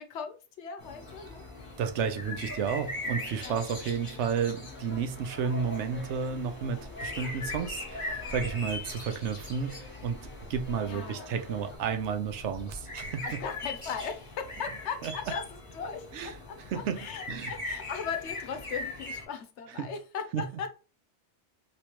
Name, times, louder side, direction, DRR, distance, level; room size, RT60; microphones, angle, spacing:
voice 1, 0.0-1.7 2.3-2.5 3.4-3.6 10.9-11.3 13.2-20.7, left 6 dB, 75° left, 1.0 m, -38 dB
sound 1, 0.8-19.3, left 2 dB, 30° left, 1.0 m, -41 dB
voice 2, 1.8-13.4 15.0-15.1 16.1-16.3 16.7-17.5 19.8-19.9 20.3-20.4, right 6 dB, 75° right, 0.9 m, -32 dB
sound 2, 2.5-11.8, left 1 dB, 10° left, 0.8 m, -47 dB
3.1 x 3.0 x 2.9 m
omnidirectional pair, 1.2 m